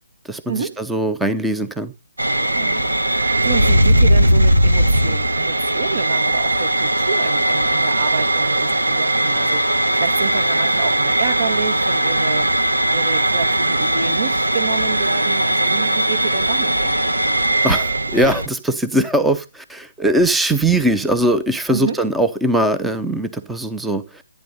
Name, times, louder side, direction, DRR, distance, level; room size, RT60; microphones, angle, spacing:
voice 1, 0.3-1.9 17.6-24.2, right 1 dB, 5° right, 0.8 m, -20 dB
sound 1, 2.2-18.5, right 1 dB, 85° right, 1.6 m, -18 dB
voice 2, 2.5-17.1 21.7-22.0, right 5 dB, 55° right, 2.5 m, -28 dB
14.0 x 9.3 x 5.4 m
figure-of-eight pair, 140°, 0 cm